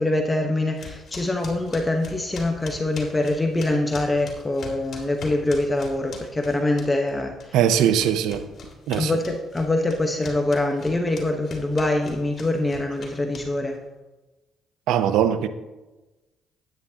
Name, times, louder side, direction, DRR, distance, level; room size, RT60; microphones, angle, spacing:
voice 1, 0.0-7.6 9.0-13.8, left 2 dB, 20° left, 1.1 m, -24 dB
sound 1, 0.8-7.1 7.4-13.8, left 5 dB, 55° left, 2.9 m, -41 dB
voice 2, 7.5-8.4 8.9-9.1 14.9-15.5, right 9 dB, 80° right, 0.6 m, -20 dB
13.0 x 9.7 x 2.9 m
cardioid pair, 80°, 0 cm